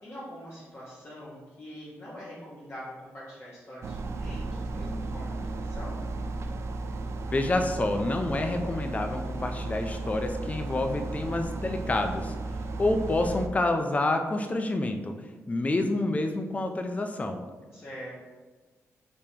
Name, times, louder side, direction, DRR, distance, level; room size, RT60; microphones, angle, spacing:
voice 1, 0.0-5.3 5.5-6.0 17.7-18.2, equal, 45° left, -8 dB, 1.2 m, -43 dB
sound 1, 3.8-13.5, right 2 dB, 55° right, 0.4 m, -34 dB
voice 2, 7.3-12.3 12.8-15.1 15.5-17.4, left 2 dB, 25° left, 5 dB, 0.4 m, -28 dB
5.0 x 3.5 x 2.9 m, 1.3 s
cardioid pair, 75°, 6 cm